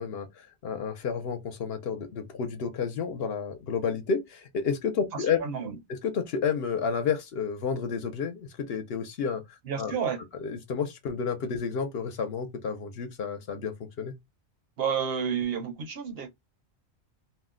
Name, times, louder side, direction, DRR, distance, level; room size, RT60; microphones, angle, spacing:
voice 1, 0.0-5.4 5.9-10.0 10.4-14.1, left 6 dB, 65° left, 0.8 m, -31 dB
voice 2, 5.1-5.8 9.7-10.2 14.8-16.3, right 7 dB, 60° right, 0.8 m, -30 dB
2.5 x 2.0 x 3.6 m
omnidirectional pair, 1.2 m